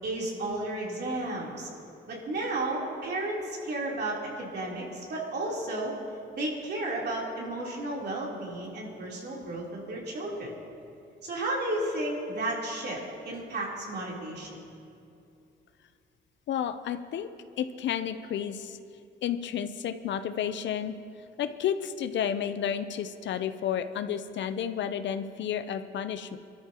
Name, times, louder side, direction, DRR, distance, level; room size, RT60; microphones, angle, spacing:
voice 1, 0.0-1.7 2.1-5.9 6.3-10.5 11.2-14.5, right 2 dB, 55° right, -4 dB, 3.6 m, -33 dB
voice 2, 16.5-17.3 17.6-18.8 19.2-21.0 21.4-26.4, left 9 dB, 65° left, 11 dB, 0.6 m, -31 dB
23.0 x 13.0 x 3.0 m, 2.6 s
cardioid pair, 90°, 20 cm